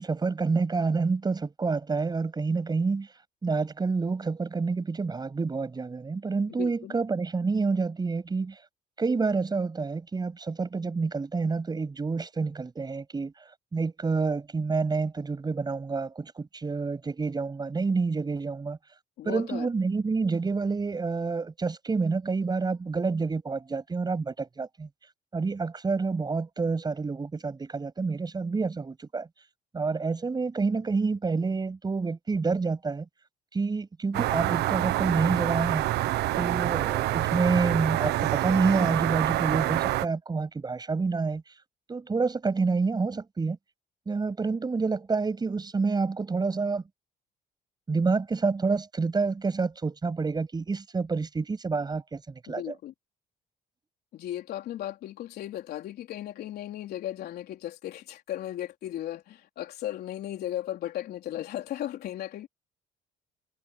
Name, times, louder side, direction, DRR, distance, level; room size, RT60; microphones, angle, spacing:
voice 1, 0.0-3.1 3.4-8.6 9.0-13.3 13.7-18.8 19.3-24.9 25.3-29.3 29.7-33.1 33.5-35.9 36.4-41.4 41.9-43.6 44.1-46.8 47.9-52.7, right 4 dB, 25° right, 7.6 m, -28 dB
voice 2, 6.5-6.9 19.2-19.7 52.5-52.9 54.1-62.5, left 12 dB, 70° left, 3.9 m, -36 dB
sound 1, 34.1-40.1, right 15 dB, 80° right, 1.1 m, -27 dB
cardioid pair, 110°, 17 cm